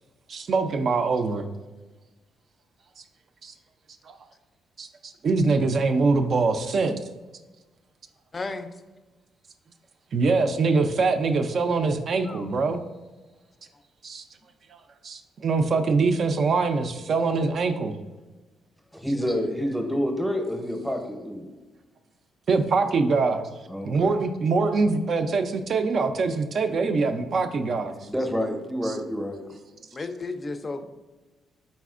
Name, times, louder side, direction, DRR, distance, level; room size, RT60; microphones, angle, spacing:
voice 1, 0.3-1.4 3.4-3.5 4.1-4.2 4.8-7.0 10.1-12.8 14.0-14.2 14.7-17.9 22.5-23.5 23.8-27.9, right 4 dB, 55° right, 7 dB, 0.3 m, -24 dB
voice 2, 8.3-8.7 12.2-12.5 27.9-28.1 29.9-30.8, left 3 dB, 30° left, 9 dB, 0.3 m, -34 dB
voice 3, 18.9-21.5 23.7-24.2 28.1-29.4, equal, 5° right, 3 dB, 0.7 m, -28 dB
4.1 x 4.1 x 2.4 m, 1.2 s
cardioid pair, 90°, 0 cm